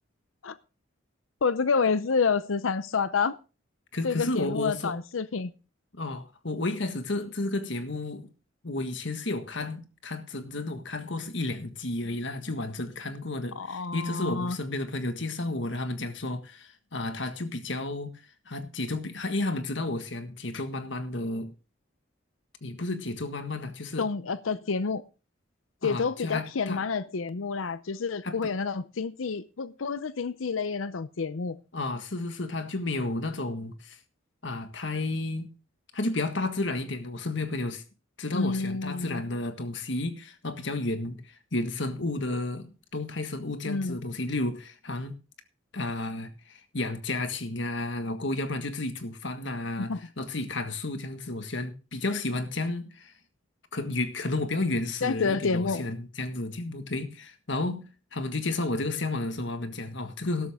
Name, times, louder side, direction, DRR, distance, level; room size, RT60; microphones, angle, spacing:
voice 1, 1.4-3.4 4.0-5.5 13.6-14.6 24.0-25.0 25.8-31.6 38.3-39.2 43.6-44.0 49.8-50.0 55.0-55.8, left 5 dB, 90° left, 0.6 m, -28 dB
voice 2, 3.9-4.9 5.9-8.3 8.6-18.1 18.5-21.5 22.6-24.1 25.8-26.8 28.2-28.4 31.7-34.0 34.4-35.5 35.9-37.8 38.2-45.2 45.7-53.1 53.7-60.5, left 2 dB, 70° left, 1.6 m, -32 dB
12.5 x 12.5 x 3.6 m
head